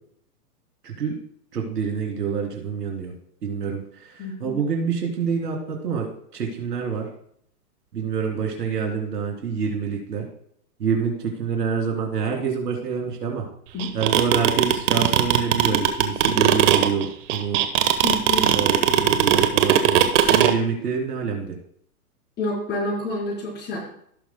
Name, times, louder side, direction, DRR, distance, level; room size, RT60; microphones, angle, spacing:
voice 1, 0.8-1.1 1.5-3.1 3.4-7.1 7.9-10.3 10.8-13.4 13.9-17.6 18.4-21.5, right 6 dB, 80° right, 1 dB, 3.3 m, -27 dB
voice 2, 4.2-4.6 13.7-13.9 18.0-18.5 22.4-23.8, left 1 dB, 20° left, -4 dB, 4.0 m, -28 dB
sound 1, 13.8-20.5, right 12 dB, 50° right, 1.2 m, -17 dB
17.5 x 6.3 x 2.2 m, 0.66 s
hypercardioid pair, 135°, 47 cm